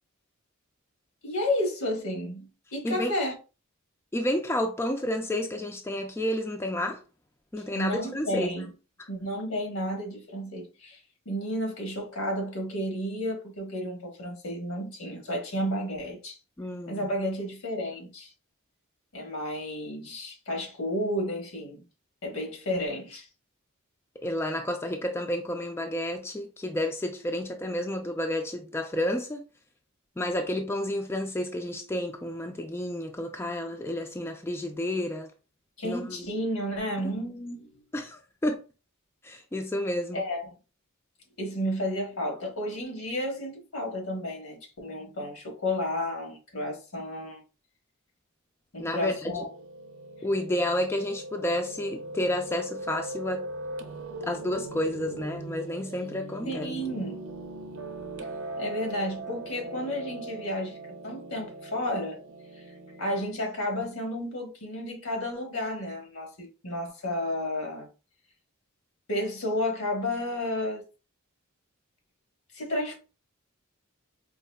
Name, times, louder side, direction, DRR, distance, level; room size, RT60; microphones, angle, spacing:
voice 1, 1.2-3.3 7.7-8.7 9.1-11.0 11.2-16.4 16.9-18.3 19.1-21.8 22.2-23.3 35.8-37.8 40.1-40.4 41.4-47.4 48.7-49.5 56.5-57.2 58.6-60.8 61.0-62.2 63.0-67.9 69.1-70.8 72.5-73.0, left 1 dB, 80° left, 1.2 m, -32 dB
voice 2, 4.1-7.0 7.5-8.5 16.6-17.1 24.2-29.4 30.2-35.3 35.8-36.3 37.0-37.1 37.9-38.6 39.2-40.3 48.8-49.4 50.2-53.5 54.2-56.7, left 1 dB, 10° left, 0.3 m, -30 dB
Piano, 48.8-63.2, right 2 dB, 65° right, 0.6 m, -40 dB
4.7 x 2.5 x 2.2 m
head